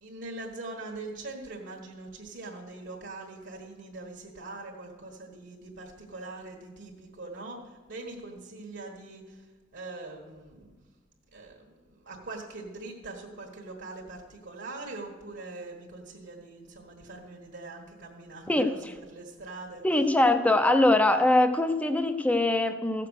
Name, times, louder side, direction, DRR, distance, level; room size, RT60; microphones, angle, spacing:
voice 1, 0.0-7.6 7.9-9.2 9.7-10.7 11.3-11.6 12.1-18.7 19.1-19.8, right 2 dB, 60° right, -1 dB, 1.6 m, -42 dB
voice 2, 18.5-18.9 19.8-23.1, left 2 dB, 5° left, 8 dB, 0.7 m, -23 dB
15.5 x 6.8 x 6.5 m, 1.3 s
head